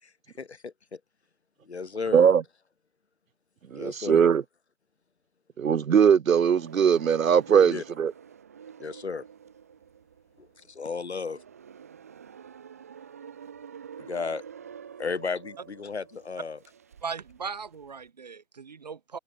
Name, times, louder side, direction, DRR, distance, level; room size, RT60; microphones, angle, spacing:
voice 1, 0.4-1.0 1.6-2.3 3.7-4.3 7.5-7.8 8.8-9.2 10.4-11.4 14.0-14.4 15.0-16.6, left 5 dB, 50° left, 6.0 m, -34 dB
voice 2, 3.7-4.4 5.6-8.1, right 7 dB, 70° right, 0.7 m, -20 dB
sound 1, 6.5-18.1, right 7 dB, 10° right, 1.4 m, -48 dB
voice 3, 17.0-19.2, right 5 dB, 30° right, 2.3 m, -38 dB
hypercardioid pair, 170°, 42 cm